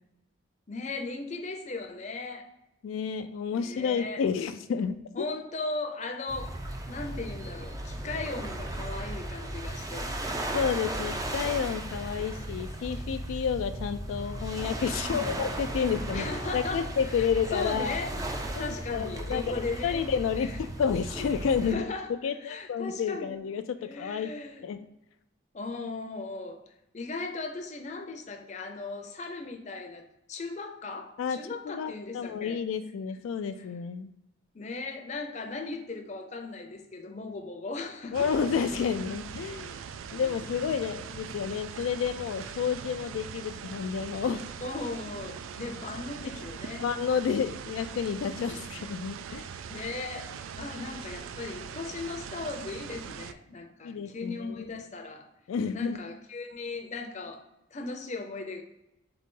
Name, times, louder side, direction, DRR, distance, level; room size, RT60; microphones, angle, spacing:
voice 1, 0.7-2.5 3.5-4.2 5.1-6.5 6.9-10.1 15.0-15.4 16.1-17.3 17.5-20.0 20.4-20.6 21.6-23.4 23.8-24.6 25.5-26.6 26.9-32.6 33.6-33.7 34.5-38.3 40.1-40.3 44.6-46.9 49.7-55.3 55.7-58.6, left 3 dB, 35° left, 4 dB, 0.5 m, -37 dB
voice 2, 2.8-5.2 10.5-16.3 16.5-18.0 18.6-21.8 22.2-24.3 24.6-24.8 31.2-31.4 31.6-34.1 38.1-39.8 40.1-44.5 46.8-49.5 53.8-54.4 55.5-56.0, left 6 dB, 85° left, 9 dB, 0.3 m, -30 dB
sound 1, 6.3-21.7, right 1 dB, 15° right, 0.4 m, -36 dB
sound 2, 38.1-53.3, right 7 dB, 85° right, 0.3 m, -41 dB
3.9 x 3.7 x 3.7 m, 0.89 s
head